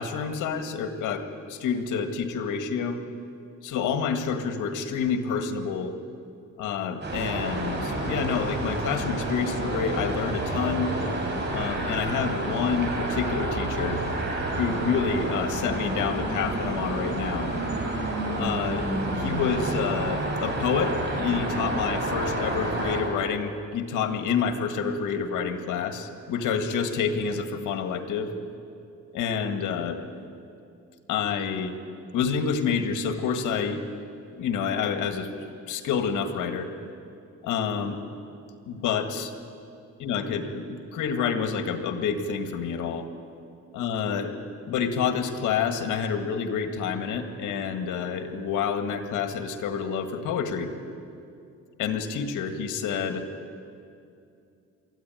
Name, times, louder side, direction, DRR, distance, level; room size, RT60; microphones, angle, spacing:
voice 1, 0.0-3.0 3.6-6.0 6.6-10.9 11.5-14.0 14.6-17.5 18.4-28.3 29.1-30.0 31.1-31.8 32.1-33.8 34.4-35.3 35.7-36.7 37.4-38.0 38.7-39.3 40.0-43.1 43.7-44.3 44.7-50.7 51.8-53.3, left 6 dB, 85° left, 6 dB, 1.9 m, -28 dB
sound 1, 7.0-23.0, right 2 dB, 35° right, 6.6 m, -29 dB
23.5 x 14.0 x 9.1 m, 2.5 s
cardioid pair, 90°, 30 cm